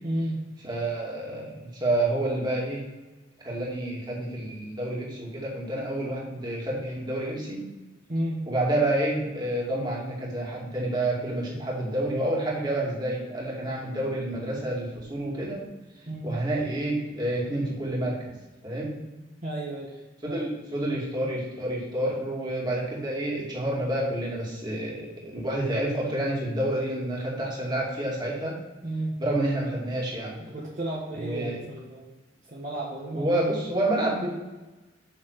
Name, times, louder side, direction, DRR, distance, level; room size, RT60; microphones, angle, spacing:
voice 1, 0.0-0.4 8.1-8.4 16.1-16.3 19.4-19.9 20.3-20.4 28.8-29.1 30.4-32.1 32.5-33.4, right 1 dB, 45° right, -5 dB, 1.5 m, -32 dB
voice 2, 0.6-2.8 3.4-7.6 8.5-15.7 16.2-18.4 18.6-19.0 20.2-28.6 29.2-30.4 31.1-31.6 33.1-34.3, right 1 dB, 25° right, -4 dB, 2.6 m, -29 dB
7.4 x 6.1 x 4.8 m, 1.1 s
head